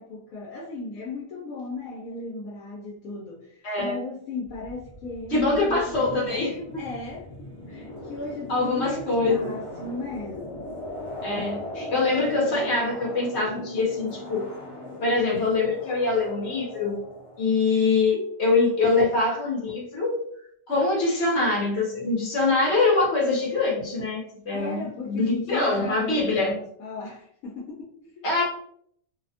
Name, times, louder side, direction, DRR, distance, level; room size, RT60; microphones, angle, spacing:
voice 1, 0.0-6.4 6.8-10.7 24.5-28.3, left 3 dB, 85° left, -3 dB, 1.0 m, -36 dB
voice 2, 3.6-4.0 5.3-6.8 8.5-9.5 11.2-14.5 15.0-17.0 17.4-20.2 20.7-26.5 28.2-28.4, left 3 dB, 55° left, -3 dB, 1.0 m, -24 dB
sound 1, 4.5-17.9, left 1 dB, 35° left, 0.7 m, -39 dB
2.7 x 2.0 x 2.7 m, 0.66 s
omnidirectional pair, 1.4 m